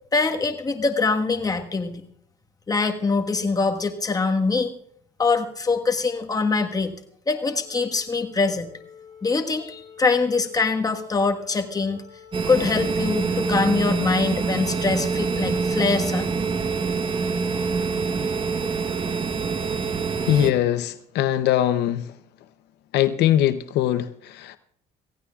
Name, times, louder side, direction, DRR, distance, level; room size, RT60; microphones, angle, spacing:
voice 1, 0.1-2.0 2.7-4.7 5.2-6.9 7.3-8.7 9.2-12.0 12.5-16.3, left 4 dB, 20° left, 3 dB, 1.4 m, -23 dB
Wind instrument woodwind instrument, 7.5-16.1, left 7 dB, 50° left, 7.8 m, -49 dB
sound 1, 12.3-20.5, right 4 dB, 30° right, 1.1 m, -25 dB
voice 2, 20.3-22.1 22.9-24.6, left 12 dB, 80° left, 11 dB, 0.7 m, -21 dB
26.5 x 15.5 x 2.4 m, 0.66 s
cardioid pair, 110°, 17 cm